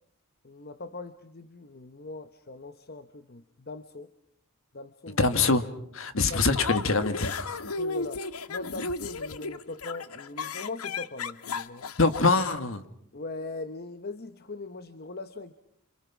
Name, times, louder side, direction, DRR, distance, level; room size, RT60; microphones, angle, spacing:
voice 1, 0.4-4.1 4.7-5.3 6.3-6.7 7.8-11.8 13.1-15.5, left 3 dB, 45° left, 0.9 m, -40 dB
voice 2, 5.2-5.7 5.9-7.6 12.0-12.8, left 3 dB, 65° left, 1.6 m, -24 dB
sound 1, 6.5-12.2, left 4 dB, 90° left, 0.9 m, -34 dB
27.5 x 26.5 x 6.0 m
head